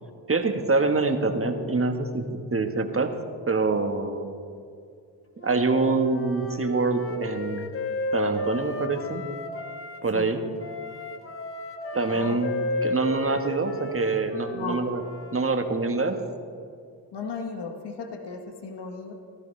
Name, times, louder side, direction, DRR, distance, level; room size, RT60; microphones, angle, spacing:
voice 1, 0.3-3.1 3.5-4.3 5.4-7.7 8.1-9.2 10.0-10.4 11.9-12.5 12.8-15.0 15.3-16.2, right 3 dB, 30° right, 6 dB, 1.3 m, -25 dB
Wind instrument woodwind instrument, 5.4-10.0 10.6-15.5, left 1 dB, 30° left, 1.4 m, -33 dB
voice 2, 14.5-14.8 17.1-19.1, left 4 dB, 65° left, 4 dB, 1.3 m, -35 dB
14.5 x 13.0 x 3.3 m, 2.3 s
supercardioid pair, 50°, 43 cm